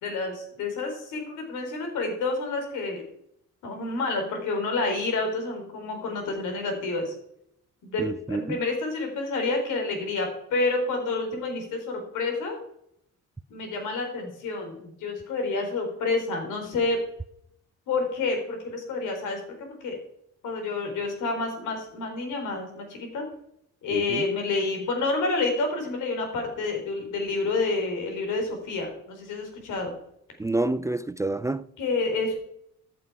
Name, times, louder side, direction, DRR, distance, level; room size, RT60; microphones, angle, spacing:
voice 1, 0.0-3.0 3.6-7.1 7.8-8.0 8.3-12.6 13.5-17.0 17.9-20.0 20.4-23.2 23.8-29.9 31.8-32.4, left 3 dB, 85° left, 4.1 m, -29 dB
voice 2, 8.0-8.6 23.9-24.2 30.4-31.6, right 2 dB, 10° right, 0.4 m, -28 dB
14.5 x 7.7 x 4.9 m
cardioid pair, 90°, 30 cm